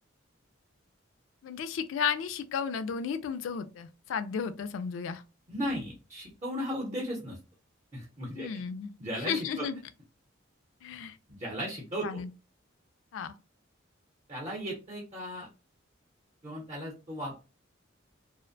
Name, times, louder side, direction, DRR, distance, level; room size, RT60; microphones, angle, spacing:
voice 1, 1.4-5.2 8.4-8.9 9.2-9.8 10.8-11.2 12.0-12.3 13.1-13.4, left 6 dB, 80° left, 0.3 m, -33 dB
voice 2, 5.5-7.4 7.9-8.6 9.0-9.7 11.3-12.2 14.3-15.5 16.4-17.3, equal, 30° right, 0.7 m, -36 dB
2.5 x 2.1 x 2.5 m
head